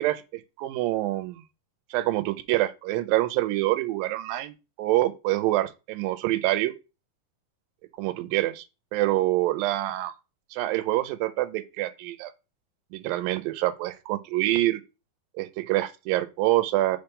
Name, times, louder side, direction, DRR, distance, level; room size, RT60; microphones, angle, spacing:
voice 1, 0.0-1.4 1.9-6.7 8.0-8.6 8.9-10.1 10.5-12.3 12.9-14.8 15.4-17.0, right 16 dB, 80° right, 2.4 m, -26 dB
5.1 x 4.5 x 5.3 m
omnidirectional pair, 4.1 m